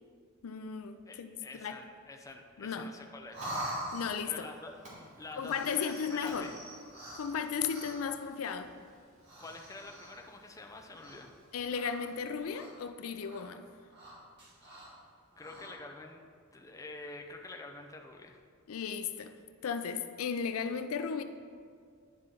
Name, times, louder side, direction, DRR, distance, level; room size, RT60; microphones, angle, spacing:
voice 1, 0.4-1.8 2.6-2.9 3.9-4.5 5.4-6.5 7.1-8.7 11.5-13.7 18.7-19.3 19.6-21.2, left 6 dB, 80° left, 9 dB, 0.4 m, -35 dB
voice 2, 1.1-3.4 4.3-4.8 5.2-6.5 9.4-11.3 15.4-16.2 16.5-18.4, left 2 dB, 15° left, 2 dB, 0.5 m, -47 dB
Fire, 3.0-12.4, equal, 35° right, 2.0 m, -58 dB
sound 1, 3.3-4.4 5.3-8.2 9.2-10.3 10.9-11.4 11.7-12.9 13.2-13.4 13.9-15.0 15.3-15.7, right 1 dB, 55° right, 1.9 m, -44 dB
9.5 x 5.5 x 3.8 m, 2.1 s
head